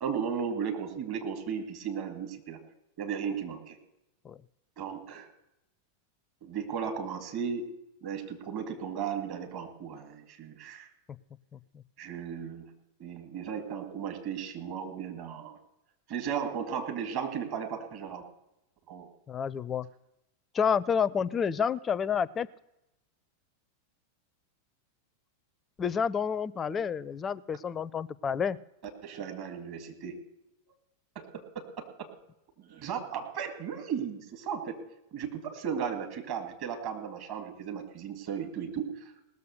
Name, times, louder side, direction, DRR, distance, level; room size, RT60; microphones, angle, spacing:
voice 1, 0.0-2.6 3.0-3.8 4.8-5.3 6.4-7.7 8.0-10.9 12.0-12.7 13.0-15.6 16.1-18.2 18.9-19.1 29.0-30.3 31.2-32.1 32.6-34.8 35.1-39.1, right 7 dB, 45° right, 5 dB, 2.2 m, -35 dB
voice 2, 11.5-11.8 19.3-19.9 20.5-22.5 25.8-28.6, left 7 dB, 20° left, 19 dB, 0.4 m, -29 dB
18.5 x 6.8 x 6.6 m, 0.89 s
figure-of-eight pair, 90°, 0 cm